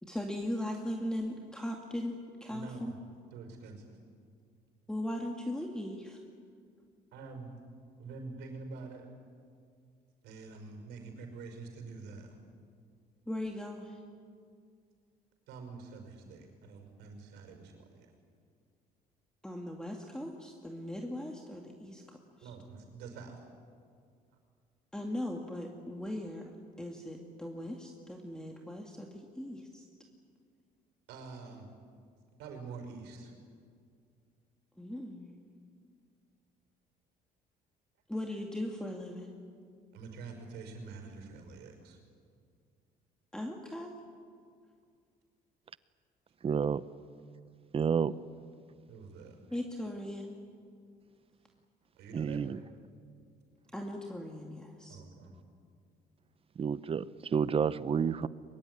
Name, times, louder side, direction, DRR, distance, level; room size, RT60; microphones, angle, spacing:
voice 1, 0.0-2.9 4.9-6.2 13.3-14.0 19.4-22.5 24.9-26.5 26.8-29.8 34.8-35.4 38.1-39.3 43.3-43.9 49.5-50.4 53.7-55.0, left 1 dB, 5° left, 1 dB, 2.2 m, -39 dB
voice 2, 2.5-3.0 3.3-4.0 7.1-7.6 8.0-9.1 10.2-12.4 15.5-18.1 22.4-23.4 31.1-31.7 32.4-33.3 39.9-42.0 48.9-49.4 51.9-52.5 54.9-55.4, right 4 dB, 90° right, 5 dB, 5.7 m, -46 dB
voice 3, 46.4-46.8 47.7-48.2 52.1-52.6 56.6-58.3, right 6 dB, 35° right, 17 dB, 0.7 m, -30 dB
22.5 x 22.5 x 9.9 m, 2.2 s
cardioid pair, 110°, 17 cm